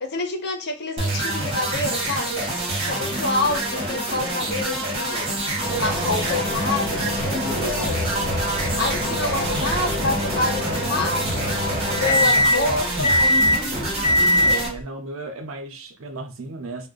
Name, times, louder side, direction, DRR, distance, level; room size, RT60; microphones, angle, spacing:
voice 1, 0.0-2.4 2.8-5.3 5.8-8.0 8.8-11.6 11.9-13.2, left 2 dB, 55° left, 4 dB, 0.6 m, -27 dB
sound 1, 1.0-14.7, right 1 dB, 30° right, 0.9 m, -27 dB
voice 2, 2.9-3.3 14.6-16.9, right 2 dB, 80° right, 6 dB, 0.6 m, -35 dB
sound 2, 5.6-14.8, left 1 dB, 10° right, 1.0 m, -24 dB
2.5 x 2.0 x 3.7 m, 0.33 s
head